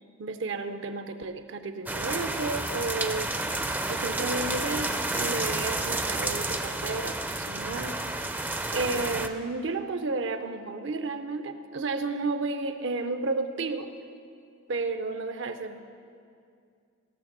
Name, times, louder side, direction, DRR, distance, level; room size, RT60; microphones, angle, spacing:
voice 1, 0.2-3.3 3.9-8.0 8.7-13.9 14.7-15.8, right 3 dB, 70° right, 9 dB, 0.7 m, -32 dB
sound 1, 1.9-9.3, right 2 dB, 10° right, 0.4 m, -30 dB
15.5 x 6.6 x 6.1 m, 2.3 s
head